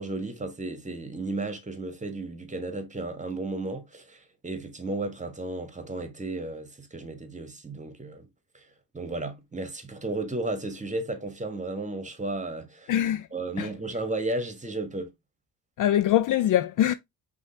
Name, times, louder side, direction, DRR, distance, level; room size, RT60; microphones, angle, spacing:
voice 1, 0.0-8.3 8.5-8.6 8.9-12.9 13.3-15.1, right 2 dB, 15° right, 1.3 m, -34 dB
voice 2, 12.9-13.3 13.6-13.7 15.8-16.9, left 12 dB, 45° left, 0.5 m, -23 dB
5.4 x 3.0 x 3.1 m
supercardioid pair, 65°, 43 cm